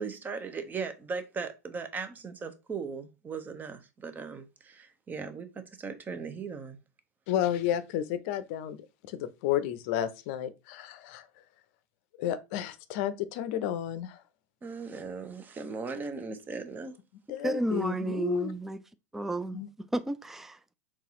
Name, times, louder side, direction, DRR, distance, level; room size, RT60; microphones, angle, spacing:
voice 1, 0.0-6.8 14.6-17.0, right 5 dB, 20° right, 0.7 m, -38 dB
voice 2, 7.3-11.3 12.2-14.2 17.3-18.5 19.5-19.7, left 11 dB, 55° left, 0.6 m, -32 dB
voice 3, 17.4-18.8 19.1-19.6 19.9-20.6, right 2 dB, 5° right, 0.3 m, -31 dB
4.0 x 2.4 x 3.7 m
hypercardioid pair, 95°, 8 cm